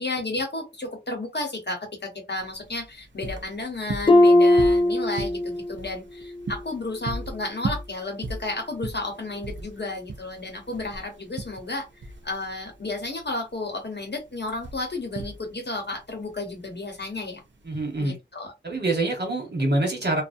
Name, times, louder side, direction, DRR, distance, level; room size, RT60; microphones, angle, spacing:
voice 1, 0.0-11.9 12.2-17.4 18.0-18.5, left 2 dB, 65° left, 0.9 m, -32 dB
sound 1, 2.4-18.0, right 3 dB, 80° right, 0.5 m, -37 dB
Harp, 4.1-5.8 6.2-6.6 7.2-7.3, left 1 dB, 25° left, 0.4 m, -19 dB
voice 2, 17.6-18.2 18.6-20.2, right 2 dB, 60° right, 1.2 m, -25 dB
2.4 x 2.0 x 2.5 m
wide cardioid pair, 55°, 19 cm